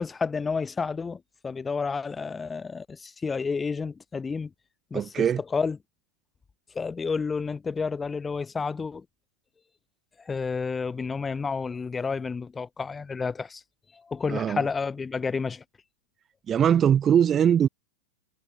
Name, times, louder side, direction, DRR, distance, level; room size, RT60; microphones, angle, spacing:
voice 1, 0.0-4.5 4.9-5.8 6.7-9.0 10.2-13.6 13.9-15.6, left 5 dB, 15° left, 1.1 m, -30 dB
voice 2, 4.9-5.4 14.3-14.6 16.5-17.7, right 9 dB, 25° right, 0.4 m, -21 dB
figure-of-eight pair, 90°, 0 cm